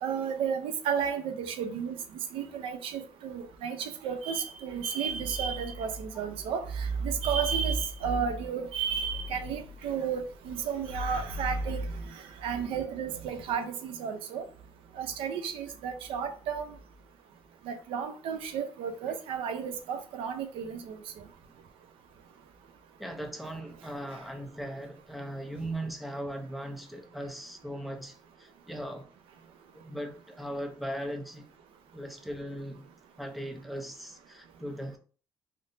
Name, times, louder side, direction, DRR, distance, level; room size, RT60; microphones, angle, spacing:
voice 1, 0.0-2.0 2.3-11.8 12.4-14.4 15.0-16.7 17.7-21.0, right 6 dB, 90° right, 0.5 m, -32 dB
voice 2, 23.0-29.1 29.7-31.5 31.9-32.9 33.2-35.0, right 1 dB, ahead, 0.6 m, -38 dB
3.5 x 2.5 x 2.6 m
cardioid pair, 110°, 9 cm